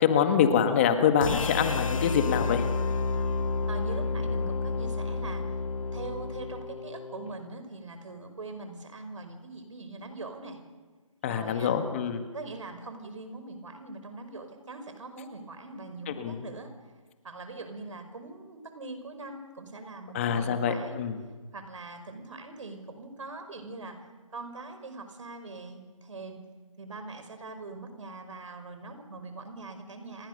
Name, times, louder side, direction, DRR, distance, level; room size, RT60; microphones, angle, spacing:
voice 1, 0.0-2.6 11.2-12.2 16.1-16.4 20.1-21.2, left 8 dB, 20° left, 7 dB, 1.9 m, -25 dB
sound 1, 1.2-7.3, left 4 dB, 70° left, 1.8 m, -30 dB
voice 2, 3.7-5.6 5.9-10.6 11.2-11.8 12.3-16.7 17.2-21.0 21.5-26.4 26.8-30.3, right 3 dB, 65° right, 8 dB, 5.4 m, -42 dB
30.0 x 22.0 x 6.8 m, 1.3 s
hypercardioid pair, 165°, 18 cm